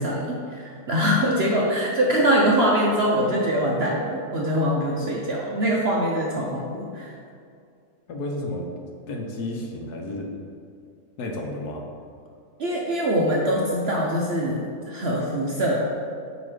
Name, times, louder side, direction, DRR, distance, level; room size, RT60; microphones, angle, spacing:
voice 1, 0.0-7.1 12.6-15.8, equal, 55° right, -3 dB, 0.7 m, -23 dB
voice 2, 8.1-8.7 9.1-10.3 11.2-11.8, left 1 dB, 75° left, 1 dB, 1.4 m, -31 dB
7.9 x 3.1 x 4.9 m, 2.3 s
omnidirectional pair, 1.7 m